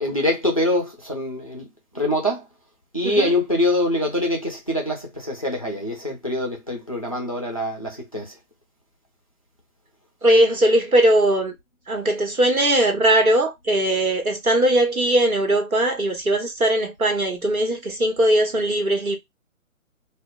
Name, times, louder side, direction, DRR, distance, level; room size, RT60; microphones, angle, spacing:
voice 1, 0.0-1.7 1.9-2.4 2.9-8.3, left 1 dB, 25° left, 0.4 m, -24 dB
voice 2, 10.2-11.5 11.9-19.2, right 1 dB, 90° right, 1.1 m, -19 dB
2.2 x 2.0 x 3.5 m
figure-of-eight pair, 135°, 41 cm